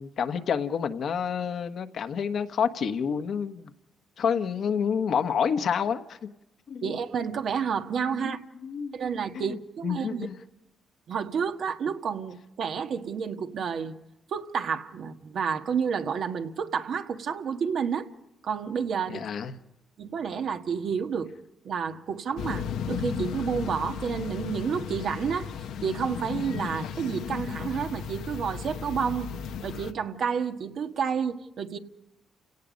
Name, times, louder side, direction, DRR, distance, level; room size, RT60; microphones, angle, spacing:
voice 1, 0.0-3.7 4.2-6.3 6.7-6.9 8.0-8.4 8.6-8.9 9.3-9.6 9.8-10.4 19.1-19.6, left 7 dB, 60° left, 1.4 m, -29 dB
voice 2, 6.8-8.4 8.9-10.3 11.1-14.0 14.3-18.1 18.4-19.2 20.0-21.3 21.6-25.5 25.8-29.3 29.6-31.8, right 6 dB, 60° right, 1.5 m, -30 dB
sound 1, 22.4-29.9, left 7 dB, 80° left, 1.2 m, -35 dB
29.5 x 18.0 x 5.3 m
cardioid pair, 90°, 0 cm